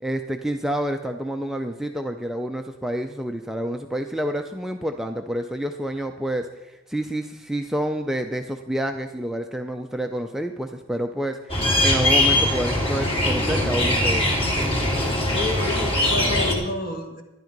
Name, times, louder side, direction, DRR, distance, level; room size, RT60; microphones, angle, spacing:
voice 1, 0.0-14.4, right 1 dB, ahead, 4 dB, 0.4 m, -28 dB
sound 1, 11.5-16.5, left 1 dB, 30° left, 2.5 m, -21 dB
voice 2, 15.3-17.2, left 3 dB, 45° left, 5 dB, 1.6 m, -29 dB
12.0 x 11.0 x 5.3 m, 1.0 s
head